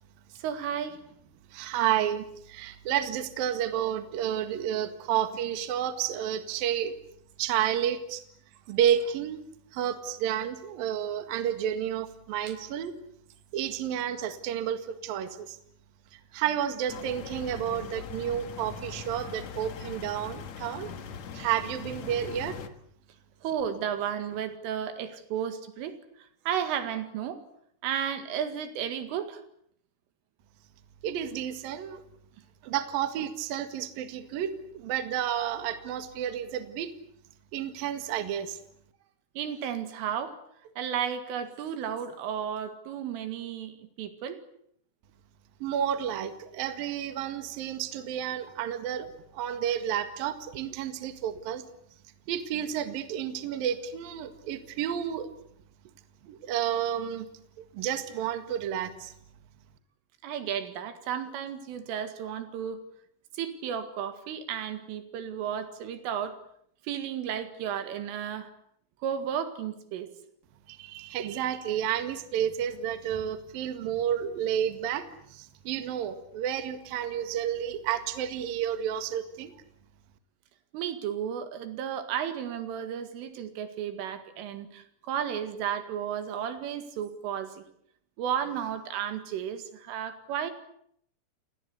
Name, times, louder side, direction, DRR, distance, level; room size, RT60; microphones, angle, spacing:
voice 1, 0.4-1.0 23.4-27.4 27.8-29.4 39.4-40.4 40.6-44.4 60.2-62.8 63.3-66.4 66.8-68.5 69.0-70.1 80.7-87.6 88.2-90.5, right 9 dB, 75° right, 10 dB, 4.5 m, -33 dB
voice 2, 1.5-6.9 7.4-8.2 8.7-9.4 9.7-13.0 13.5-15.6 16.3-20.9 21.3-22.6 31.0-32.0 32.6-36.9 37.5-38.6 45.6-49.1 49.3-51.6 52.3-55.3 56.2-57.3 57.6-59.1 70.7-79.5, right 10 dB, 55° right, 9 dB, 3.0 m, -31 dB
sound 1, 16.9-22.7, left 6 dB, 80° left, 1.5 m, -41 dB
29.0 x 20.5 x 8.3 m, 0.68 s
omnidirectional pair, 5.9 m